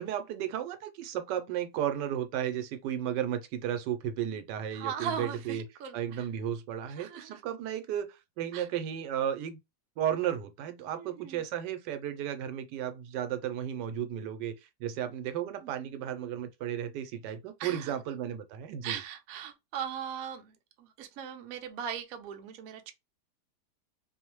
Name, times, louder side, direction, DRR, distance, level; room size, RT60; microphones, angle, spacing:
voice 1, 0.0-5.6 5.9-9.6 10.0-14.5 14.8-19.0, right 10 dB, 90° right, 1.2 m, -34 dB
voice 2, 4.7-6.3 7.0-7.4 8.5-8.7 10.9-11.4 15.6-15.9 17.6-18.0 18.8-22.9, right 8 dB, 70° right, 0.9 m, -39 dB
2.9 x 2.0 x 2.9 m
omnidirectional pair, 1.8 m